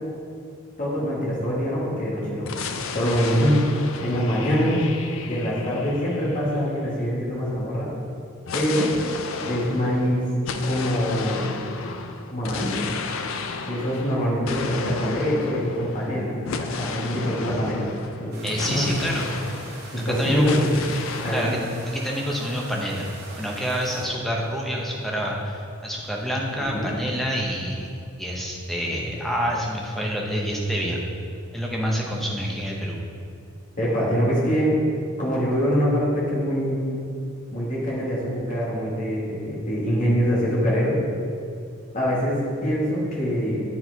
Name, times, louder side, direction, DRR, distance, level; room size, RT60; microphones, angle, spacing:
voice 1, 0.8-2.5 2.9-3.6 4.0-4.9 5.3-7.9 8.5-8.9 9.4-10.2 10.6-11.6 12.3-12.8 13.6-16.3 16.6-17.9 18.2-18.4 18.7-18.8 19.9-20.7 21.2-21.5 26.7-26.9 33.8-34.8 35.2-37.0 37.5-41.0 41.9-43.6, equal, 40° left, -6 dB, 1.7 m, -24 dB
sound 1, 2.5-7.2 8.5-20.1 20.5-21.5, left 5 dB, 70° left, 0.4 m, -34 dB
sound 2, 18.3-24.0, right 2 dB, 50° right, 1.2 m, -42 dB
voice 2, 18.4-19.2 20.2-20.5 21.3-23.1 23.4-27.9 28.2-31.0 31.5-33.0, equal, ahead, -2 dB, 0.8 m, -27 dB
8.7 x 4.5 x 4.0 m, 2.4 s
head